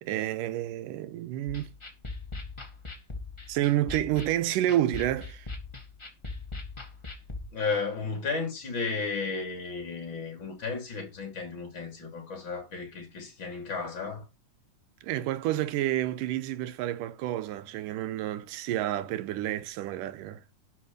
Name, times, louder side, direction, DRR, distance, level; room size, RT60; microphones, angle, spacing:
voice 1, 0.0-1.7 3.5-5.5 15.0-20.4, right 13 dB, 85° right, 2.4 m, -29 dB
sound 1, 1.5-7.4, left 3 dB, 15° left, 1.1 m, -41 dB
voice 2, 7.5-14.2, left 4 dB, 35° left, 3.7 m, -33 dB
11.5 x 5.1 x 6.1 m
omnidirectional pair, 3.8 m